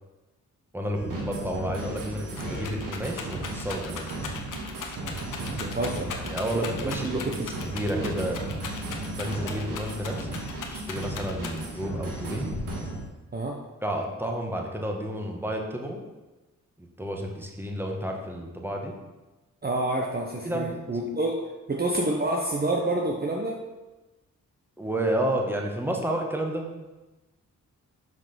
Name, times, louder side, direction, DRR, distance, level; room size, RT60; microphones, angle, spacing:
voice 1, 0.7-4.1 6.2-8.5 9.1-10.4 10.7-12.5 13.8-16.0 16.8-19.0 20.4-20.7 24.8-26.7, right 1 dB, 5° right, 1 dB, 1.4 m, -31 dB
sound 1, 0.9-13.0, right 2 dB, 80° right, 1.8 m, -35 dB
Rattle, 2.0-11.9 12.5-13.1, left 5 dB, 75° left, 1.0 m, -39 dB
voice 2, 5.6-6.1 6.4-7.5 13.3-13.6 19.6-21.4 21.7-23.6, right 1 dB, 30° right, 0 dB, 0.9 m, -28 dB
6.0 x 5.1 x 6.0 m, 1.1 s
cardioid pair, 75°, 32 cm